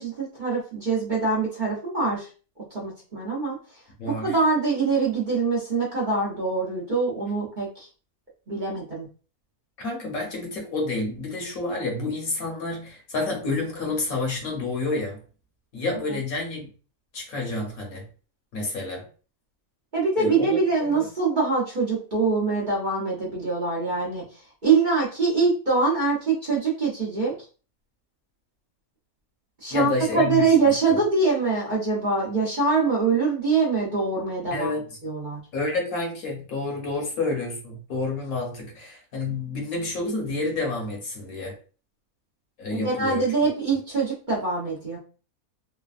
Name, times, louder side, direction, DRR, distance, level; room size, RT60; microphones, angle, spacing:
voice 1, 0.0-2.3 2.7-3.6 4.0-7.9 8.5-9.1 19.9-24.2 24.6-27.3 29.6-34.7 35.0-35.4 42.7-45.0, right 4 dB, 40° right, 0.8 m, -24 dB
voice 2, 4.0-4.4 9.8-15.2 15.7-16.7 17.1-18.0 18.5-19.1 20.2-20.5 20.9-21.1 29.7-30.6 30.9-31.0 34.5-34.8 35.5-41.6 42.6-43.2, left 2 dB, 75° left, 1.3 m, -29 dB
3.2 x 2.2 x 2.3 m
omnidirectional pair, 1.5 m